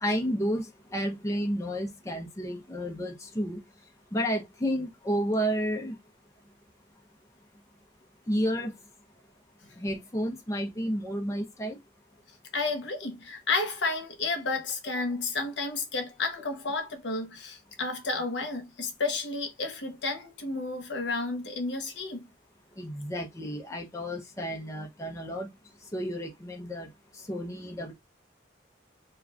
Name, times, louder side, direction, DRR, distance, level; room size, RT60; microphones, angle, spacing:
voice 1, 0.0-3.6 4.1-6.0 8.3-8.7 9.8-11.8 22.8-25.5 25.9-26.9 27.3-27.9, equal, 15° left, 0.5 m, -31 dB
voice 2, 12.5-22.3, left 3 dB, 75° left, 0.8 m, -31 dB
2.4 x 2.4 x 3.2 m
head